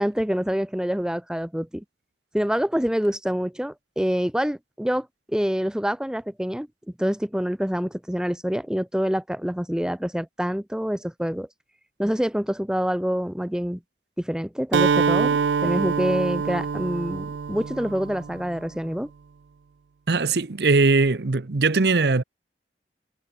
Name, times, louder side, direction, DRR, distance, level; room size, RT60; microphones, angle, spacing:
voice 1, 0.0-1.8 2.3-6.7 7.0-11.5 12.0-13.8 14.2-19.1, equal, 5° right, 0.6 m, -26 dB
Acoustic guitar, 14.7-18.6, right 6 dB, 85° right, 0.4 m, -25 dB
voice 2, 20.1-22.2, right 3 dB, 65° right, 0.8 m, -20 dB
head